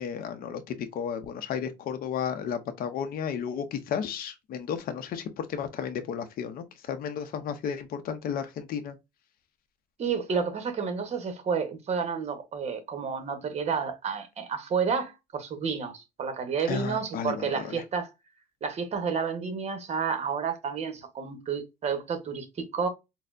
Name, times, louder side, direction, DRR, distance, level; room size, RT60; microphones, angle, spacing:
voice 1, 0.0-9.0 16.7-17.8, left 7 dB, 60° left, 0.6 m, -33 dB
voice 2, 10.0-18.1 18.6-22.9, right 6 dB, 40° right, 0.9 m, -30 dB
4.1 x 2.0 x 2.4 m
cardioid pair, 110°, 17 cm